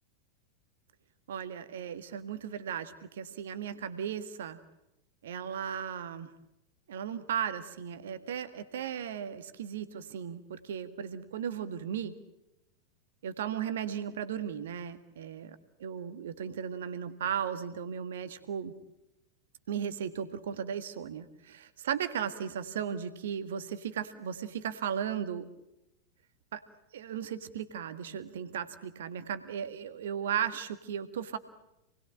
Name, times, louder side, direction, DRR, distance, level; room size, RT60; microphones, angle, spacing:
voice 1, 1.3-4.6 5.2-6.3 6.9-12.2 13.2-18.7 19.7-25.5 26.5-26.6 26.9-31.4, right 8 dB, 60° right, 11 dB, 1.8 m, -36 dB
28.5 x 20.5 x 8.9 m, 0.88 s
figure-of-eight pair, 90°, 0 cm